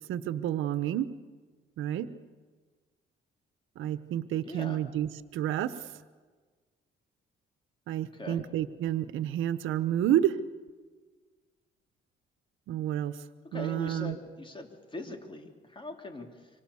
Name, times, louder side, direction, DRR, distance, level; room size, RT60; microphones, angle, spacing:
voice 1, 0.1-1.1 1.8-2.1 3.8-5.7 7.9-10.4 12.7-13.2 13.5-14.1, right 11 dB, 85° right, 12 dB, 1.1 m, -29 dB
voice 2, 4.4-4.8 8.1-8.4 13.5-16.5, left 2 dB, 25° left, 3 dB, 3.7 m, -41 dB
26.0 x 25.0 x 7.2 m, 1.5 s
cardioid pair, 90°, 20 cm